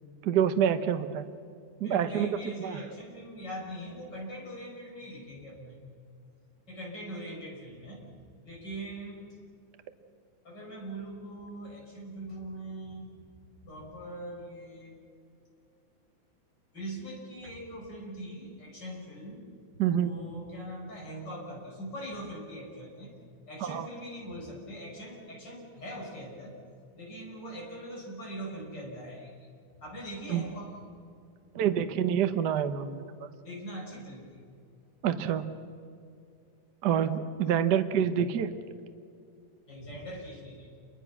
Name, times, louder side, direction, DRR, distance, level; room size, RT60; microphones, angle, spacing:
voice 1, 0.2-1.3 1.8-2.3 2.6-2.8 19.8-20.2 23.6-23.9 30.3-30.4 31.5-33.0 35.0-35.5 36.8-38.5, right 9 dB, 65° right, 9 dB, 1.0 m, -27 dB
voice 2, 1.8-5.8 6.7-8.1 8.4-9.3 10.4-13.2 13.6-15.0 16.7-19.5 19.9-23.1 23.5-26.6 26.9-29.3 29.8-30.8 33.4-34.4 39.7-40.7, right 1 dB, 35° left, -2 dB, 6.5 m, -41 dB
28.5 x 23.0 x 6.1 m, 2.4 s
omnidirectional pair, 3.5 m